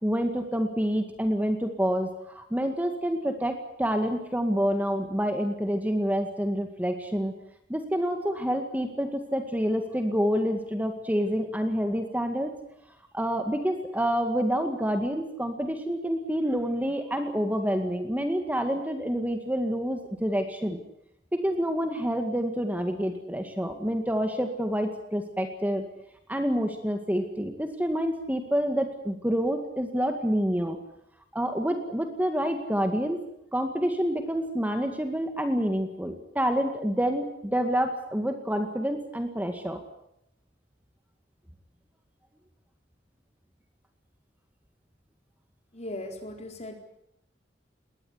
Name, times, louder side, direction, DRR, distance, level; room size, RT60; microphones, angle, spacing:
voice 1, 0.0-7.3 7.7-12.5 13.1-20.8 21.3-25.8 26.3-30.8 31.3-33.2 33.5-39.8, equal, 10° right, 6 dB, 2.0 m, -28 dB
voice 2, 45.7-46.8, left 1 dB, 40° left, 4 dB, 4.3 m, -38 dB
21.0 x 18.5 x 9.8 m, 0.79 s
head